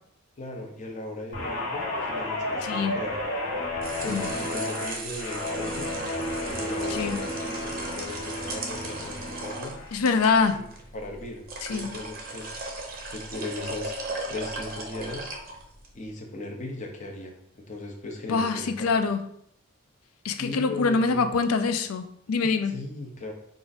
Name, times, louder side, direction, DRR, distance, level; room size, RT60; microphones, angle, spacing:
voice 1, 0.4-3.2 4.0-5.9 6.5-9.7 10.5-10.7 10.9-12.5 13.0-13.9 14.3-15.3 15.9-18.9 20.4-21.3 22.7-23.3, left 2 dB, 35° left, 1 dB, 0.7 m, -37 dB
Guitar, 1.3-9.9 10.3-10.6, left 1 dB, 55° left, 1.1 m, -32 dB
voice 2, 2.6-3.0 4.1-4.4 6.9-7.2 9.9-10.6 11.7-11.9 18.3-19.2 20.2-22.8, left 4 dB, 75° left, 8 dB, 0.4 m, -25 dB
sound 1, 3.6-16.0, right 2 dB, 40° right, 0.6 m, -38 dB
4.6 x 2.5 x 4.0 m, 0.72 s
head